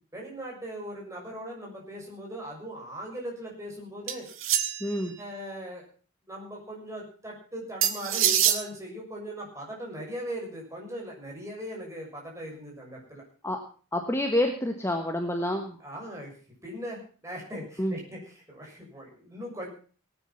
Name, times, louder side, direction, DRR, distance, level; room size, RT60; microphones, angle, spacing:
voice 1, 0.1-4.2 5.2-5.8 6.3-13.2 15.8-16.3 16.6-18.2 18.5-19.7, equal, 15° right, -2 dB, 6.5 m, -39 dB
sound 1, 4.1-5.0 7.8-8.6, right 9 dB, 80° right, 1.8 m, -25 dB
voice 2, 4.8-5.2 13.4-13.6 13.9-15.8 17.8-18.0, left 1 dB, 15° left, 4 dB, 1.4 m, -28 dB
18.5 x 9.8 x 5.7 m, 0.40 s
head